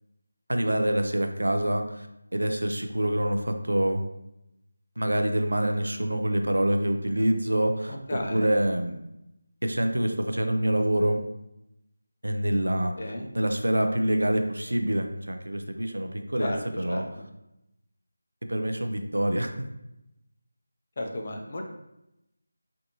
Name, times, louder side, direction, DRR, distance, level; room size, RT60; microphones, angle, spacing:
voice 1, 0.5-2.1 2.3-4.0 5.0-8.0 8.3-9.1 9.6-11.2 12.2-17.1 18.5-19.5, right 1 dB, 80° right, 5 dB, 0.4 m, -26 dB
voice 2, 7.9-8.5 13.0-13.3 16.4-16.6 16.9-17.2 21.0-21.6, left 1 dB, 40° left, 2 dB, 0.5 m, -34 dB
3.4 x 2.6 x 2.7 m, 0.88 s
figure-of-eight pair, 165°, 0 cm